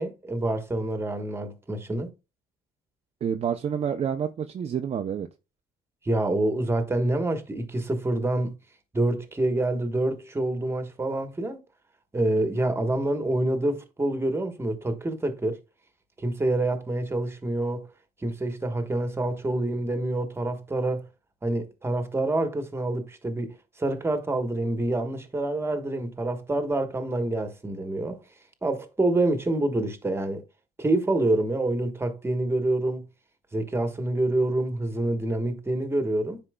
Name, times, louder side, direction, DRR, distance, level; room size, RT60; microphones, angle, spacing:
voice 1, 0.0-2.1 6.0-8.5 8.9-11.6 12.1-15.6 16.2-17.9 18.2-21.1 21.4-28.2 28.6-30.4 30.8-33.0 33.5-36.4, right 2 dB, 15° right, 1.2 m, -27 dB
voice 2, 3.2-5.3, right 8 dB, 35° right, 0.6 m, -28 dB
9.8 x 4.4 x 2.2 m
cardioid pair, 110°, 17 cm